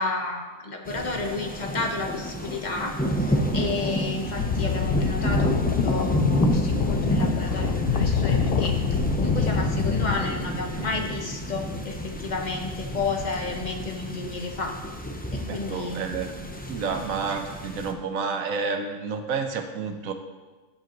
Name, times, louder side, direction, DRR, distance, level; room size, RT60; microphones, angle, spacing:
voice 1, 0.0-14.8 15.3-16.1 16.7-16.9, left 3 dB, 35° left, 2 dB, 1.1 m, -32 dB
sound 1, 0.9-17.9, equal, 10° left, 0.4 m, -29 dB
sound 2, 4.4-10.2, left 8 dB, 60° left, 0.6 m, -26 dB
voice 2, 15.5-20.1, right 5 dB, 75° right, 6 dB, 1.3 m, -30 dB
15.0 x 7.7 x 3.0 m, 1.3 s
omnidirectional pair, 1.5 m